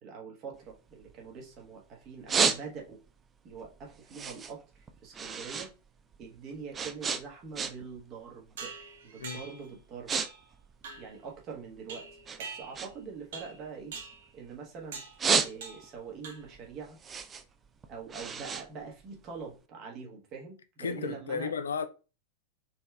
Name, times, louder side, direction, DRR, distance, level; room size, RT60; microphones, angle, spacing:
voice 1, 0.0-3.0 3.4-5.7 6.2-8.7 9.0-10.1 11.0-12.1 12.4-13.9 14.3-15.0 15.4-17.0 17.9-21.5, right 5 dB, 35° right, 1.2 m, -44 dB
sound 1, 0.5-1.7 2.0-3.1 3.5-5.7 6.0-8.0 8.3-8.7 9.3-9.4 9.7-10.3 10.5-11.8 12.2-14.6 15.0-16.0 16.4-19.5, right 5 dB, 20° right, 0.4 m, -32 dB
sound 2, 8.6-9.7 10.1-10.5 10.8-11.2 11.9-13.0 13.3-13.6 13.9-14.3 14.9-15.2 15.6-15.9 16.2-16.7, right 4 dB, 60° right, 0.6 m, -44 dB
voice 2, 20.8-21.9, left 6 dB, 70° left, 0.3 m, -33 dB
4.1 x 3.2 x 2.3 m
figure-of-eight pair, 90°, 0 cm